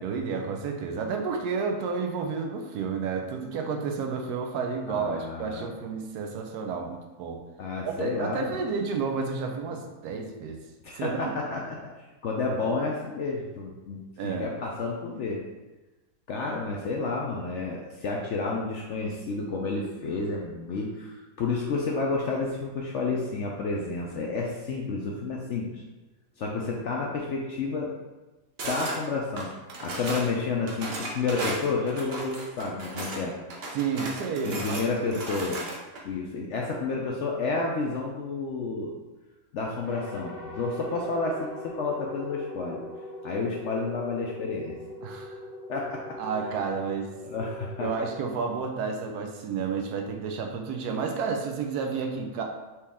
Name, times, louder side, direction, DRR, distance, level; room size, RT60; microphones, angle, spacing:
voice 1, 0.0-7.4 7.8-10.6 10.9-11.3 14.2-14.5 33.7-34.8 35.4-35.5 45.0-45.4 46.2-47.1 47.8-52.4, right 5 dB, 80° right, 3 dB, 1.1 m, -31 dB
voice 2, 4.9-5.7 7.6-8.6 10.8-11.8 12.2-15.4 16.3-25.8 26.4-27.9 28.6-29.5 29.8-33.3 34.4-35.6 36.0-39.0 39.5-42.8 43.2-44.7 45.7-46.2 47.2-47.9, left 3 dB, 65° left, -1 dB, 0.7 m, -30 dB
sound 1, 28.6-29.0 29.4-30.3 30.7-33.2 33.5-36.0, right 1 dB, 50° right, 0.8 m, -35 dB
sound 2, 39.8-49.1, left 1 dB, 20° right, 0.4 m, -42 dB
4.4 x 2.9 x 3.5 m, 1.1 s
omnidirectional pair, 1.7 m